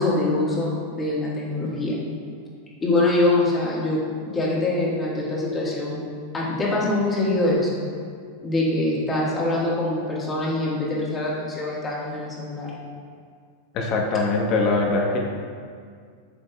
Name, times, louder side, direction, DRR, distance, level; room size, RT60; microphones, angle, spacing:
voice 1, 0.0-2.0 2.8-6.0 6.3-7.8 8.4-12.7, left 2 dB, 15° left, -5 dB, 1.5 m, -24 dB
voice 2, 13.7-15.2, left 3 dB, 40° left, 0 dB, 1.0 m, -22 dB
8.3 x 6.5 x 2.3 m, 2.1 s
supercardioid pair, 145°, 0 cm